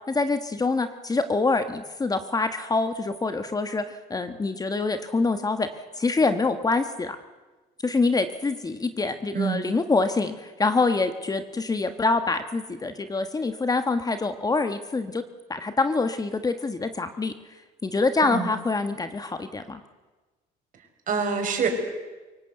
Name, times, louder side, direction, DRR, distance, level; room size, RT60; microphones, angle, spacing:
voice 1, 0.1-5.7 6.0-7.2 7.8-15.2 15.5-17.3 17.8-19.8, left 3 dB, 20° left, 9 dB, 1.3 m, -25 dB
voice 2, 21.1-21.7, right 6 dB, 50° right, 4 dB, 5.3 m, -25 dB
23.5 x 18.0 x 8.1 m, 1.2 s
cardioid pair, 110°, 17 cm